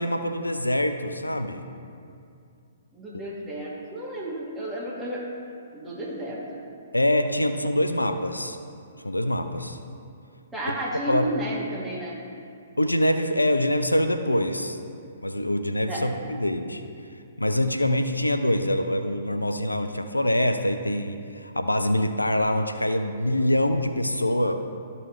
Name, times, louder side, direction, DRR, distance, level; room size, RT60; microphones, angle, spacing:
voice 1, 0.0-1.7 6.9-8.6 9.0-9.8 11.1-11.3 12.8-14.8 15.2-16.8 17.4-24.6, left 1 dB, 90° left, 7 dB, 0.4 m, -24 dB
voice 2, 2.9-5.4 5.7-6.6 10.5-12.2 15.9-16.1, right 1 dB, 10° right, -6 dB, 1.9 m, -32 dB
12.5 x 5.4 x 3.2 m, 2.4 s
figure-of-eight pair, 120°, 0 cm